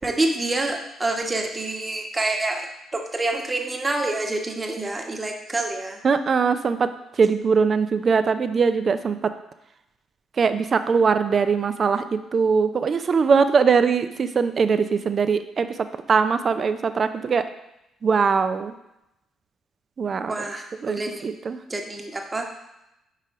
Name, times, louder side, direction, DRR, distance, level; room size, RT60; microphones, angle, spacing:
voice 1, 0.0-2.7 2.9-6.0 20.3-21.3 21.7-22.6, right 2 dB, 25° right, 2 dB, 1.2 m, -27 dB
voice 2, 6.0-9.3 10.4-17.5 18.0-18.7 20.0-20.3 20.8-21.6, right 5 dB, 45° right, 11 dB, 0.5 m, -21 dB
5.7 x 5.3 x 4.9 m, 0.88 s
hypercardioid pair, 45°, 0 cm